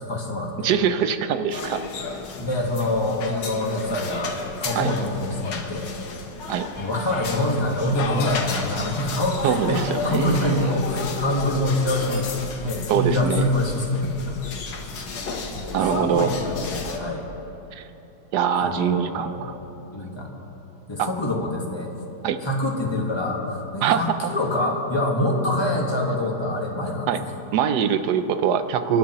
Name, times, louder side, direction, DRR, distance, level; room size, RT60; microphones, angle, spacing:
voice 1, 0.0-0.7 2.4-5.9 6.8-12.3 12.6-14.4 15.5-17.3 18.6-19.6 19.9-20.3 20.9-21.9 22.4-27.3, left 1 dB, 15° left, -1 dB, 1.4 m, -25 dB
voice 2, 0.6-1.8 4.7-4.9 6.5-6.7 9.4-10.8 12.9-13.4 15.7-16.3 17.7-17.8 18.3-19.5 21.0-21.1 22.2-22.4 23.8-24.0 27.1-27.2 27.5-29.0, right 8 dB, 70° right, 10 dB, 1.2 m, -23 dB
sound 1, 1.5-17.0, left 4 dB, 80° left, 1.8 m, -32 dB
25.5 x 11.5 x 3.0 m, 3.0 s
omnidirectional pair, 1.9 m